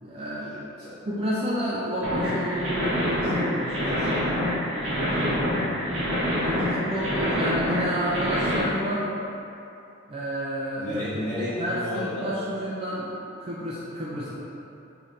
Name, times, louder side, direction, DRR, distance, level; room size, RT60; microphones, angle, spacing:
voice 1, 0.0-0.7 1.1-4.3 5.0-5.5 6.4-9.2 10.1-11.0 11.4-14.3, equal, 30° right, -8 dB, 0.4 m, -30 dB
sound 1, 2.0-8.6, equal, 80° right, 1.1 m, -26 dB
voice 2, 5.5-5.9 6.2-7.2 10.8-12.3, left 1 dB, 60° left, -15 dB, 1.2 m, -34 dB
3.1 x 2.8 x 3.8 m, 2.8 s
head